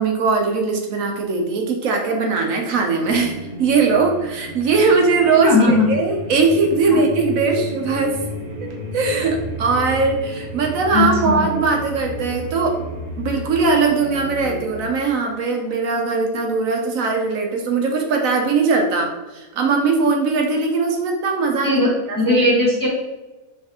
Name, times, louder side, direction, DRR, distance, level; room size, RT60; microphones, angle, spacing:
voice 1, 0.0-8.2 8.6-12.8 13.2-21.8 22.1-22.4, right 4 dB, 70° right, 2 dB, 1.1 m, -20 dB
sound 1, 3.0-14.9, right 1 dB, 45° right, 0.8 m, -32 dB
voice 2, 5.4-5.9 10.9-11.5 21.6-21.9 22.2-22.9, left 2 dB, 15° left, -5 dB, 0.9 m, -17 dB
5.6 x 3.2 x 2.9 m, 1.1 s
omnidirectional pair, 1.5 m